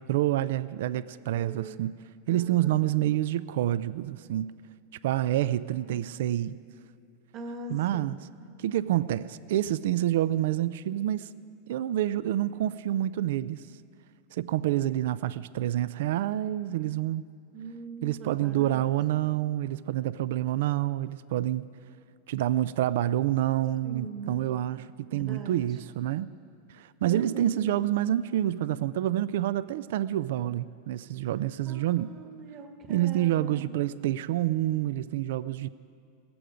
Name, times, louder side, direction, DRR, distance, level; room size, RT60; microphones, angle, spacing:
voice 1, 0.0-2.0 2.3-4.5 5.0-6.6 7.7-8.1 8.6-11.3 11.7-13.6 14.3-17.2 18.0-21.7 22.3-26.3 26.7-32.1 32.9-35.7, right 13 dB, 75° right, 17 dB, 0.4 m, -28 dB
voice 2, 1.3-1.8 2.3-2.8 5.7-6.1 7.3-8.3 17.5-18.9 19.2-19.3 23.8-24.5 25.1-25.8 27.0-27.8 31.6-33.7, right 3 dB, 35° right, 4 dB, 1.5 m, -41 dB
17.0 x 14.5 x 5.1 m, 2.4 s
supercardioid pair, 140°, 0 cm